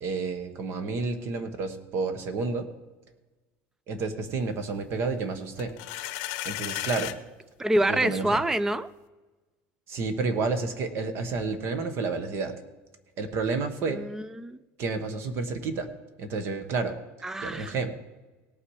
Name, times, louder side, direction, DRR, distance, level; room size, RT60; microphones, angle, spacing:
voice 1, 0.0-2.7 3.9-5.7 6.0-6.1 6.4-7.2 7.8-8.4 9.9-12.5 13.2-14.0 14.8-15.9 16.2-17.0 17.4-17.9, right 4 dB, 45° right, 9 dB, 1.3 m, -30 dB
sound 1, 5.6-7.2, left 16 dB, 70° left, 0.7 m, -34 dB
voice 2, 7.6-8.9 13.9-14.6 17.2-17.7, right 1 dB, 10° right, 16 dB, 0.3 m, -26 dB
18.0 x 6.0 x 4.8 m, 1.2 s
cardioid pair, 165°, 6 cm